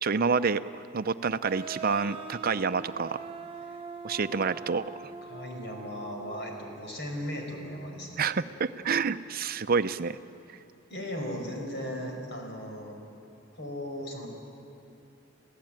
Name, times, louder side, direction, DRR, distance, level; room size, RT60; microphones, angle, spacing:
voice 1, 0.0-0.6 0.9-3.2 4.0-4.8 8.2-10.2, right 5 dB, 50° right, 11 dB, 0.6 m, -28 dB
sound 1, 1.4-6.9, right 5 dB, 30° right, 1.0 m, -43 dB
voice 2, 5.3-8.3 10.9-13.0 13.5-14.3, equal, 60° left, 1 dB, 5.2 m, -37 dB
27.5 x 16.0 x 8.9 m, 2.8 s
head